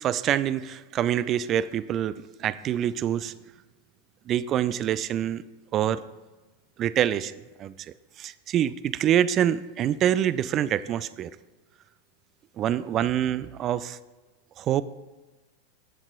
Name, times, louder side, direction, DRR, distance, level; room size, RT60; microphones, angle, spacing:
voice 1, 0.0-3.3 4.3-5.4 5.7-6.0 6.8-11.3 12.6-14.0 14.6-14.8, right 10 dB, 30° right, 17 dB, 0.3 m, -26 dB
16.0 x 7.2 x 2.4 m, 1.2 s
figure-of-eight pair, 90°, 0 cm